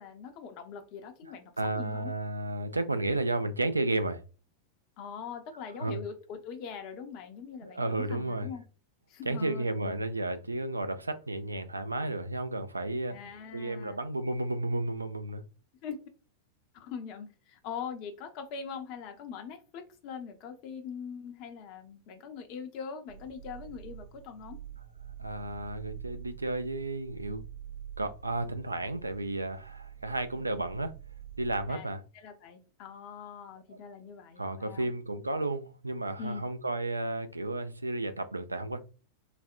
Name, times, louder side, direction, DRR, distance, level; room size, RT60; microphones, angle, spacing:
voice 1, 0.0-2.1 5.0-8.6 9.1-10.0 13.1-14.0 15.8-16.0 16.7-24.6 30.3-30.4 31.7-34.9 36.2-36.4, left 6 dB, 45° left, 0.6 m, -42 dB
voice 2, 1.6-4.2 5.8-6.0 7.6-8.5 9.3-13.2 13.5-15.4 25.2-27.4 28.0-30.9 31.4-32.0 34.4-38.8, right 2 dB, 80° right, 0.3 m, -32 dB
sound 1, 23.1-31.6, right 9 dB, 65° right, 1.1 m, -47 dB
4.1 x 2.1 x 2.4 m
figure-of-eight pair, 90°, 0 cm